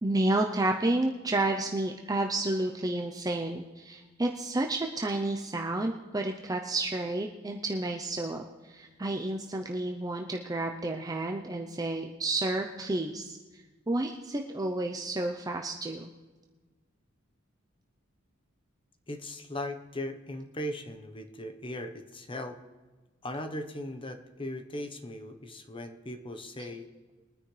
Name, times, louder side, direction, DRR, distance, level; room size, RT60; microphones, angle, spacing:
voice 1, 0.0-13.4 13.9-16.1, right 2 dB, 20° right, 2 dB, 0.6 m, -31 dB
voice 2, 19.1-22.6 23.2-26.9, left 1 dB, 25° left, 7 dB, 0.9 m, -38 dB
22.5 x 9.6 x 3.3 m, 1.3 s
head